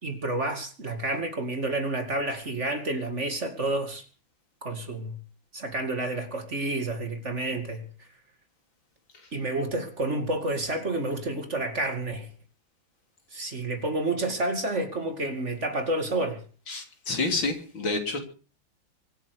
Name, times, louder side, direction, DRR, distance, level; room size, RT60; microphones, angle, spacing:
voice 1, 0.0-4.0 4.6-5.2 5.5-7.9 9.3-12.3 13.3-16.4, right 2 dB, 35° right, 2.6 m, -29 dB
voice 2, 16.7-18.2, left 3 dB, 80° left, 4.0 m, -29 dB
24.5 x 8.4 x 6.6 m
omnidirectional pair, 2.1 m